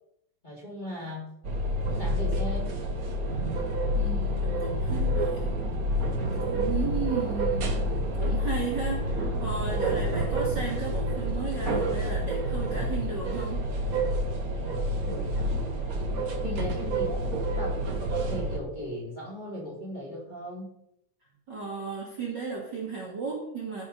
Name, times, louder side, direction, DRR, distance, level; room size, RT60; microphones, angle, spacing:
voice 1, 0.4-1.3 1.8-2.8 6.8-7.1 9.9-10.1 14.6-15.6 16.4-20.7, equal, 15° left, -5 dB, 3.1 m, -38 dB
sound 1, 1.4-18.6, right 1 dB, 75° right, 0.8 m, -28 dB
voice 2, 4.0-5.6 6.4-7.8 8.1-13.6 16.4-16.9 21.5-23.8, right 4 dB, 35° right, -3 dB, 2.7 m, -35 dB
14.5 x 6.6 x 5.4 m, 0.77 s
omnidirectional pair, 3.6 m